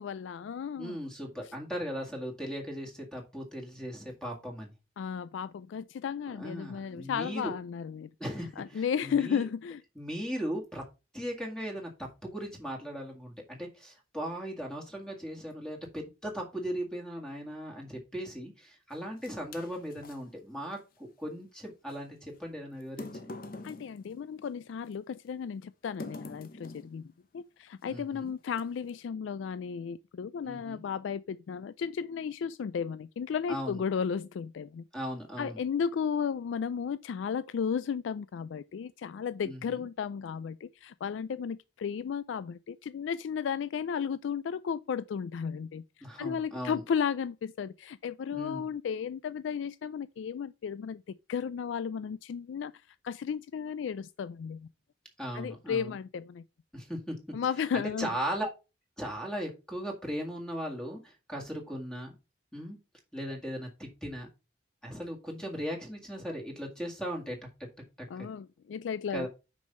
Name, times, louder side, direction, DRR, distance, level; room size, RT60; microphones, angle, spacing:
voice 1, 0.0-1.0 5.0-8.1 8.6-9.8 23.6-27.0 27.3-34.8 35.4-45.8 46.2-51.0 51.3-52.7 53.0-54.7 55.3-56.4 57.3-58.1 68.1-69.3, left 7 dB, 80° left, 0.3 m, -34 dB
voice 2, 0.8-4.7 6.3-7.5 8.2-9.5 10.0-10.8 11.1-23.3 27.9-28.3 30.4-30.8 33.5-33.8 34.9-35.6 39.4-39.9 46.0-46.8 48.3-48.6 55.2-56.0 56.7-57.4 57.7-58.5 59.0-62.1 62.5-62.8 63.1-64.3 64.8-67.4 68.2-68.3 69.1-69.3, equal, 5° left, 1.9 m, -38 dB
sound 1, 18.9-20.2 21.9-22.0 22.8-24.9 26.0-27.0 27.8-28.0 28.5-29.0, left 2 dB, 50° left, 0.9 m, -45 dB
6.3 x 5.3 x 5.4 m
head